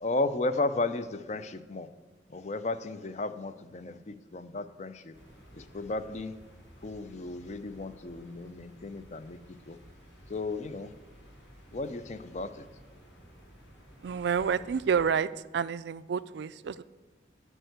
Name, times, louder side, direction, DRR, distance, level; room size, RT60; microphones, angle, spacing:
voice 1, 0.0-1.9 2.3-5.2 5.5-6.3 6.8-9.8 10.3-10.9 11.7-12.7, left 2 dB, 35° left, 12 dB, 0.5 m, -34 dB
sound 1, 5.1-15.1, equal, 70° left, 3.8 m, -54 dB
voice 2, 14.0-16.8, right 6 dB, 65° right, 16 dB, 0.3 m, -29 dB
11.0 x 4.5 x 8.0 m, 1.2 s
head